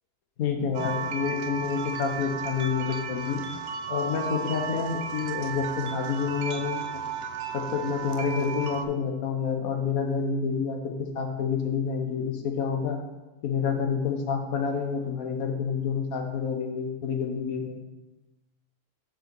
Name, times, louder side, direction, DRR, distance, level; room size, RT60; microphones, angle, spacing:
voice 1, 0.4-3.4 3.9-7.0 7.5-13.0 13.4-17.8, left 6 dB, 65° left, 4 dB, 1.3 m, -28 dB
sound 1, 0.7-8.9, right 6 dB, 90° right, 0.5 m, -34 dB
5.7 x 5.0 x 5.9 m, 1.1 s
omnidirectional pair, 1.7 m